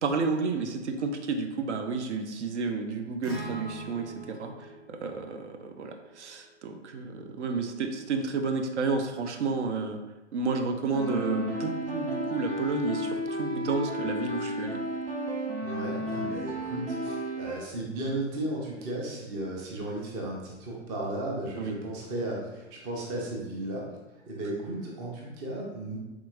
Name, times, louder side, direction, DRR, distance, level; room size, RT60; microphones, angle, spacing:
voice 1, 0.0-4.5 4.9-10.0 10.3-14.7 21.6-21.7, right 4 dB, 70° right, 4 dB, 0.5 m, -31 dB
Acoustic guitar, 3.2-7.5, right 2 dB, ahead, 0.8 m, -45 dB
sound 1, 10.9-17.6, equal, 50° right, 1.1 m, -33 dB
voice 2, 15.6-23.9 24.3-26.0, right 1 dB, 15° right, -2 dB, 0.4 m, -35 dB
3.5 x 2.8 x 2.4 m, 1.0 s
figure-of-eight pair, 115°, 37 cm